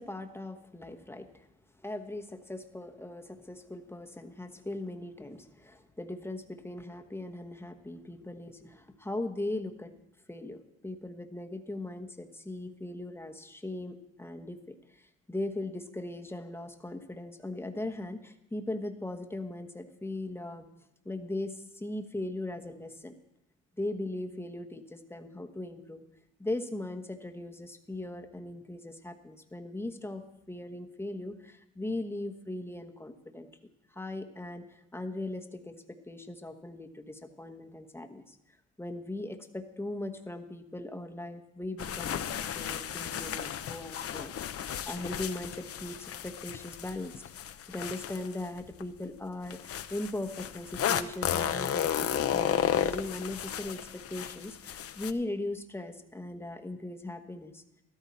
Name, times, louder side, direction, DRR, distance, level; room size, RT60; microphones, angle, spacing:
voice 1, 0.0-1.5 1.8-9.9 10.3-20.7 21.0-23.1 23.8-26.0 26.4-33.5 33.9-38.4 38.8-47.1 47.7-57.6, left 2 dB, 10° left, 6 dB, 1.1 m, -39 dB
sound 1, 41.8-48.8 49.5-55.1, left 9 dB, 50° left, 0.7 m, -33 dB
13.5 x 12.5 x 4.2 m, 0.86 s
cardioid pair, 90°, 30 cm